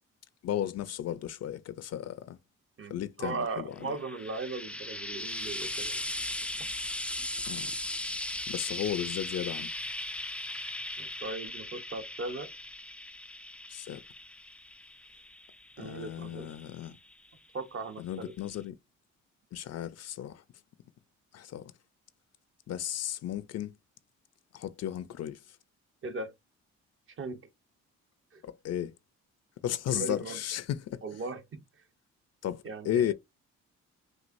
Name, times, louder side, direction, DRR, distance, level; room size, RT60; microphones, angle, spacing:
voice 1, 0.4-2.4 2.9-3.9 7.5-7.7 8.5-9.7 13.7-14.0 15.8-17.0 18.0-18.8 19.5-20.4 21.3-21.7 22.7-23.7 24.5-25.4 28.4-28.9 29.6-31.0 32.4-33.1, left 11 dB, 55° left, 0.6 m, -34 dB
voice 2, 2.8-6.0 6.6-6.7 11.0-12.5 15.8-16.5 17.5-18.3 26.0-26.3 27.2-27.4 28.3-28.4 29.9-30.4 31.0-31.6 32.6-33.1, right 3 dB, 45° right, 0.9 m, -38 dB
Frying (food), 3.8-17.3 18.2-18.3, left 1 dB, 5° left, 0.3 m, -38 dB
6.1 x 2.6 x 2.6 m
cardioid pair, 90°, 30 cm